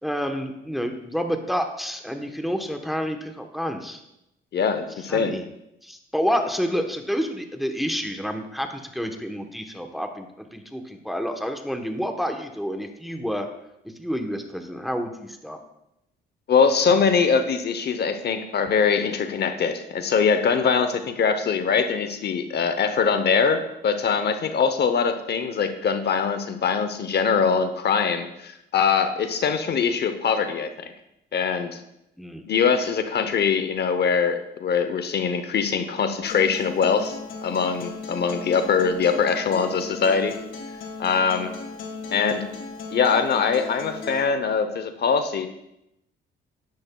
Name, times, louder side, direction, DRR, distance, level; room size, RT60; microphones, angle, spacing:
voice 1, 0.0-4.0 5.0-5.4 5.8-13.5 13.9-15.6 32.2-32.4, equal, ahead, 5 dB, 1.0 m, -29 dB
voice 2, 4.5-5.4 16.5-30.9 31.3-31.8 32.5-40.4 41.0-41.5 42.1-42.5 42.9-45.5, left 6 dB, 55° left, 9 dB, 0.8 m, -22 dB
Acoustic guitar, 36.2-44.2, left 4 dB, 85° left, 1.5 m, -37 dB
10.5 x 10.5 x 2.3 m, 0.84 s
cardioid pair, 90°, 20 cm